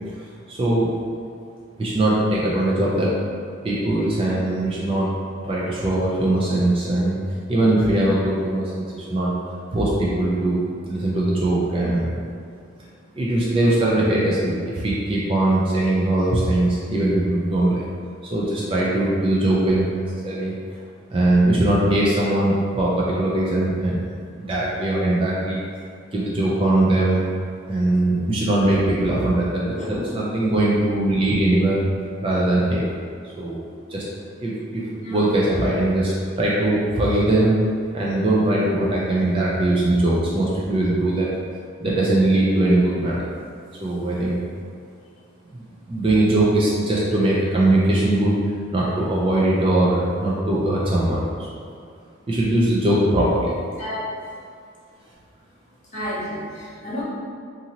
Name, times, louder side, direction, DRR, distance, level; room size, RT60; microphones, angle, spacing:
voice 1, 0.5-0.9 1.8-3.1 3.6-5.1 5.4-7.2 7.5-9.3 9.7-12.2 13.1-17.8 18.2-20.5 21.1-24.0 24.4-25.6 26.1-27.2 27.7-31.8 32.2-32.8 33.4-33.6 33.9-34.0 34.4-37.5 37.9-41.3 41.8-43.3 43.8-44.4 45.5-48.4 48.7-51.5 52.3-53.5, right 1 dB, 25° right, -5 dB, 0.3 m, -21 dB
voice 2, 29.7-30.0 35.0-35.2 53.8-54.1 55.9-57.0, left 1 dB, 35° left, -8 dB, 0.7 m, -31 dB
2.7 x 2.5 x 2.8 m, 2.2 s
head